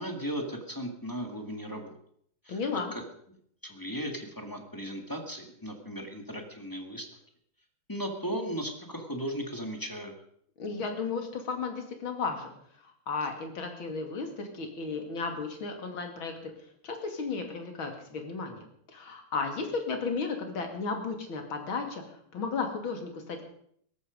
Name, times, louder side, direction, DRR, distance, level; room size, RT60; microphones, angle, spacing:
voice 1, 0.0-2.0 2.4-3.0 3.6-7.1 7.9-10.1, equal, 10° left, 4 dB, 2.1 m, -36 dB
voice 2, 2.5-2.9 10.6-16.5 16.8-18.6 18.9-23.4, left 4 dB, 75° left, 4 dB, 3.3 m, -34 dB
17.5 x 14.5 x 5.2 m, 0.66 s
omnidirectional pair, 2.2 m